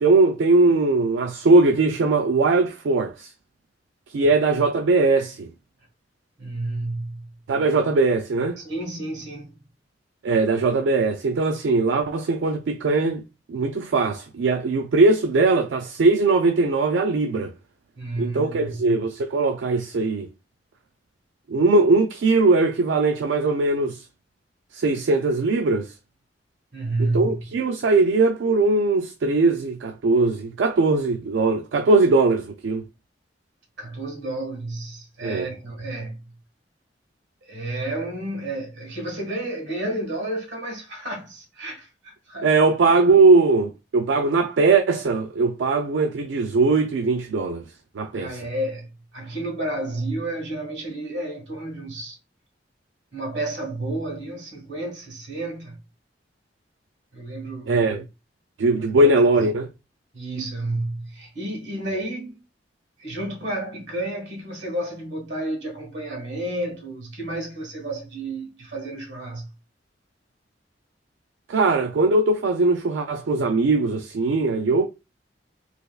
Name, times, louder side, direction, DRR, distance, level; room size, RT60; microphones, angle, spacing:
voice 1, 0.0-3.3 4.1-5.5 7.5-8.6 10.2-13.2 13.5-17.5 18.2-20.3 21.5-24.0 24.7-25.9 27.0-32.8 35.2-35.5 42.4-47.6 47.9-48.4 57.7-58.1 58.6-59.7 71.5-74.9, right 3 dB, 85° right, 0.4 m, -20 dB
voice 2, 6.4-7.3 8.6-9.7 17.9-18.8 26.7-27.4 33.8-36.2 37.4-42.6 48.1-52.2 53.1-55.8 57.1-57.9 58.8-59.2 60.1-62.4 63.0-69.5, right 1 dB, 70° right, 1.6 m, -31 dB
3.3 x 3.0 x 2.3 m
head